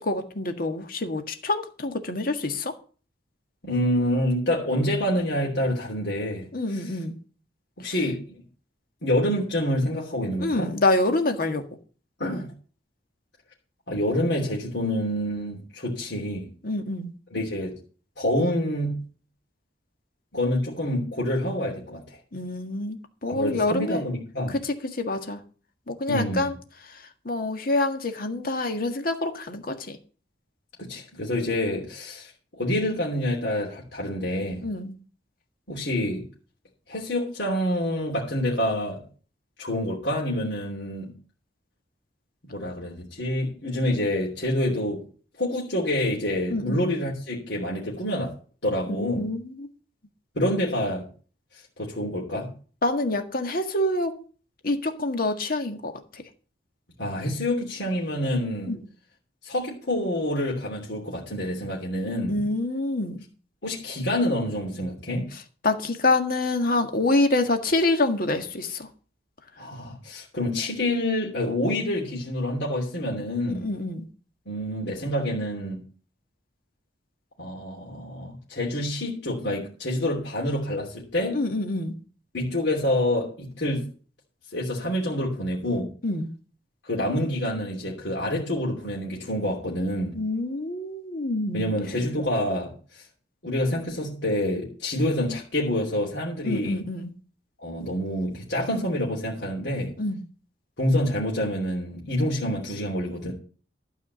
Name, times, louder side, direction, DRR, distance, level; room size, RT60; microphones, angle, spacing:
voice 1, 0.0-2.7 6.5-7.2 7.8-7.9 10.4-11.6 16.6-17.1 22.3-24.0 24.5-25.4 25.9-26.5 27.2-30.0 34.6-35.0 46.5-47.0 48.9-49.7 52.8-54.2 54.6-56.2 58.7-58.8 62.3-63.2 65.6-68.9 73.5-74.1 81.3-81.9 86.0-86.3 90.1-91.7 96.4-97.2 100.0-100.2, left 2 dB, 50° left, 6 dB, 1.7 m, -26 dB
voice 2, 3.6-7.0 7.8-8.4 9.0-10.7 12.2-12.5 13.9-16.5 17.3-17.7 18.2-19.0 20.3-22.2 23.3-24.6 26.1-26.5 28.6-28.7 30.8-32.3 32.6-34.6 35.7-36.2 36.9-39.0 39.6-41.1 42.5-45.0 45.4-48.3 48.6-49.3 50.3-51.0 51.8-52.5 57.0-58.7 59.4-62.4 63.6-65.3 69.6-73.7 74.5-75.8 77.4-81.4 82.3-83.8 84.5-85.9 86.8-90.1 91.5-93.0 93.4-96.8 97.6-99.9 100.8-103.3, left 1 dB, 70° left, -4 dB, 3.2 m, -27 dB
12.5 x 4.9 x 8.2 m, 0.40 s
head